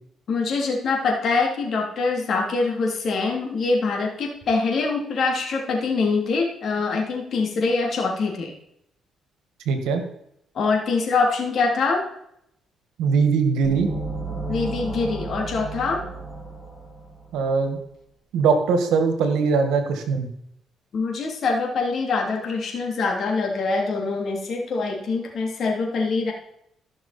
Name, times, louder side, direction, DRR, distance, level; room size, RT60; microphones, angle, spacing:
voice 1, 0.3-8.5 10.5-12.0 14.5-16.0 20.9-26.3, left 4 dB, 60° left, 0 dB, 3.0 m, -24 dB
voice 2, 9.7-10.0 13.0-13.9 17.3-17.8 18.3-20.3, right 5 dB, 90° right, 7 dB, 1.6 m, -21 dB
sound 1, 13.6-17.4, right 2 dB, 15° right, 4.7 m, -33 dB
15.5 x 6.1 x 4.3 m, 0.74 s
cardioid pair, 90°, 0 cm